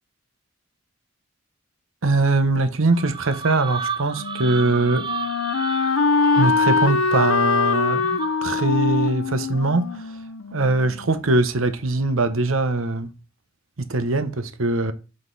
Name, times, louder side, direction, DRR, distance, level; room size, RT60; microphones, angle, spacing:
voice 1, 2.0-5.1 6.4-10.1 10.5-13.1 13.8-14.9, right 2 dB, 80° right, 0.9 m, -22 dB
sound 1, 2.9-8.6, right 5 dB, 20° right, 0.3 m, -33 dB
Wind instrument woodwind instrument, 4.2-11.0, left 4 dB, 80° left, 0.6 m, -23 dB
5.9 x 5.1 x 4.0 m
head